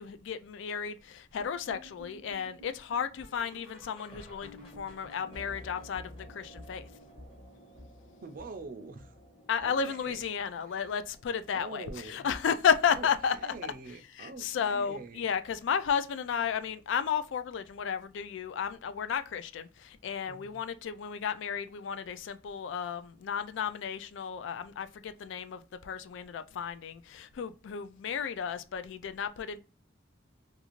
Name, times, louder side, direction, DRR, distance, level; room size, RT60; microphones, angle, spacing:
voice 1, 0.0-6.9 9.5-13.5 14.2-29.6, left 7 dB, 65° left, 0.3 m, -33 dB
sound 1, 1.4-10.5 10.8-11.1 11.4-11.5 12.0-12.1 12.6-12.7, left 1 dB, 30° left, 0.9 m, -52 dB
sound 2, 5.2-12.1, right 1 dB, 85° left, 1.0 m, -57 dB
voice 2, 8.2-9.1 9.6-10.2 10.6-11.0 11.5-12.3 12.9-15.3 20.3-20.6, right 3 dB, 45° right, 0.4 m, -45 dB
2.5 x 2.4 x 2.9 m
head